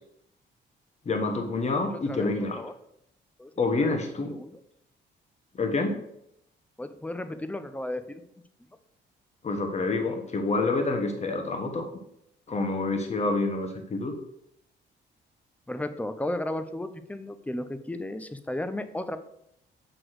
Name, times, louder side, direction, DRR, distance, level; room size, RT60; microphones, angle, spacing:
voice 1, 1.0-2.6 3.6-4.4 5.5-6.0 9.4-11.9 12.5-14.1, left 3 dB, 35° left, 5 dB, 1.3 m, -27 dB
voice 2, 1.9-2.7 3.4-3.5 3.8-3.9 4.3-4.6 6.8-8.2 15.7-19.2, left 1 dB, 5° left, 10 dB, 0.7 m, -34 dB
7.9 x 3.1 x 6.3 m, 0.76 s
cardioid pair, 90°, 20 cm